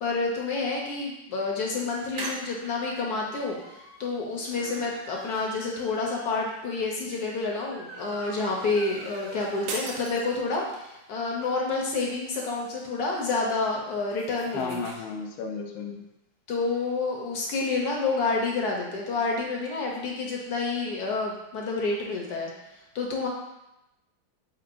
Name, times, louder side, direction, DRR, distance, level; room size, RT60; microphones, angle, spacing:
voice 1, 0.0-3.6 4.0-14.8 16.5-22.5 22.9-23.3, left 3 dB, 65° left, -1 dB, 1.1 m, -29 dB
sound 1, 1.9-10.5 10.9-11.0 11.2-11.3 11.6-15.0, right 2 dB, 65° right, 1.3 m, -44 dB
sound 2, 9.7-10.9, right 3 dB, 85° right, 1.5 m, -37 dB
voice 2, 14.5-16.0, left 4 dB, 85° left, 2 dB, 1.5 m, -33 dB
4.6 x 4.5 x 2.5 m, 0.90 s
omnidirectional pair, 2.2 m